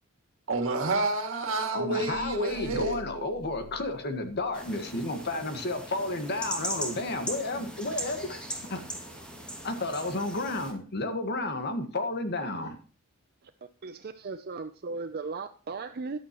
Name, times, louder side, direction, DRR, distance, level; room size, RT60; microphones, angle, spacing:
voice 1, 0.5-3.0, right 2 dB, 65° right, 2.4 m, -29 dB
voice 2, 1.7-8.4 8.7-8.8 9.6-12.8, left 2 dB, 50° left, 1.6 m, -32 dB
sound 1, 2.1-4.8, left 3 dB, 85° left, 0.9 m, -48 dB
sound 2, 4.5-10.7, equal, 5° left, 2.2 m, -39 dB
voice 3, 13.8-16.2, right 4 dB, 45° right, 0.5 m, -36 dB
14.0 x 11.0 x 3.0 m
head